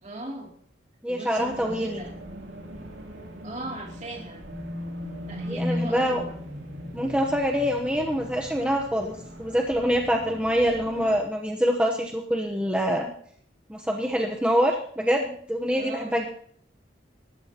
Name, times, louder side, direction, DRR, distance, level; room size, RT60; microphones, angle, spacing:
voice 1, 0.0-0.5 1.1-2.1 3.4-4.4 5.2-6.4 15.7-16.2, right 2 dB, 40° right, 1 dB, 2.8 m, -38 dB
voice 2, 1.0-2.0 5.4-6.2 6.9-9.1 9.4-13.1 13.7-16.3, equal, 5° right, 0 dB, 0.9 m, -25 dB
sound 1, 1.4-11.2, left 1 dB, 70° right, 2.9 m, -37 dB
26.5 x 14.0 x 2.9 m, 0.63 s
head